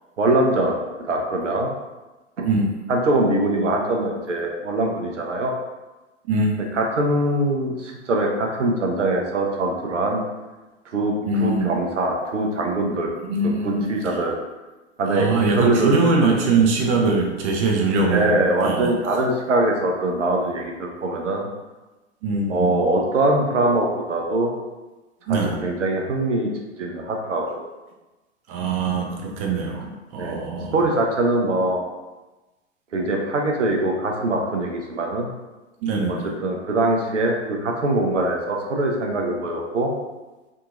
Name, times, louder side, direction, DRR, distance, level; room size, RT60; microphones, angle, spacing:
voice 1, 0.2-1.7 2.4-2.5 2.9-5.5 6.7-10.2 10.9-11.1 11.4-13.1 13.4-14.3 15.0-16.0 18.0-21.5 22.5-24.5 25.3-26.5 26.8-27.6 30.2-30.4 30.7-31.8 32.9-35.3 36.1-36.2 36.4-39.9, right 2 dB, 80° right, 1 dB, 0.6 m, -22 dB
voice 2, 6.3-6.6 11.2-11.7 13.2-13.9 15.1-18.9 22.2-22.7 25.3-25.7 28.5-30.8 35.8-36.3, right 3 dB, 30° right, 0 dB, 0.4 m, -22 dB
2.8 x 2.6 x 2.4 m, 1.1 s
figure-of-eight pair, 100°, 36 cm